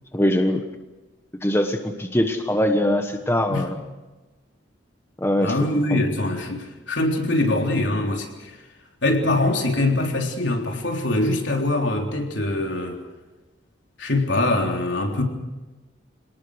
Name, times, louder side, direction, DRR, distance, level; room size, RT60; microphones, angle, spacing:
voice 1, 0.1-0.6 1.4-3.8 5.2-5.6 5.9-6.0, left 1 dB, 15° left, 1.2 m, -22 dB
voice 2, 5.4-8.6 9.0-13.0 14.0-15.2, left 2 dB, 70° left, 3.6 m, -23 dB
27.5 x 19.0 x 6.4 m
head